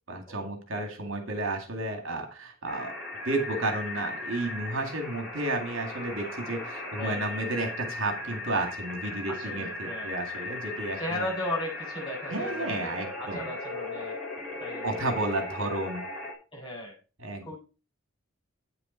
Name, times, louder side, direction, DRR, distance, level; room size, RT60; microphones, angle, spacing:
voice 1, 0.1-3.0 3.2-11.3 12.3-13.5 14.8-16.0 17.2-17.5, right 2 dB, 70° right, 4 dB, 2.1 m, -32 dB
sound 1, 2.7-16.3, left 2 dB, ahead, 3.9 m, -38 dB
voice 2, 7.0-7.4 9.2-10.1 11.0-14.2 14.6-14.9 16.5-17.0 17.4-17.5, left 1 dB, 25° left, -4 dB, 6.0 m, -36 dB
9.0 x 6.9 x 4.4 m, 0.34 s
head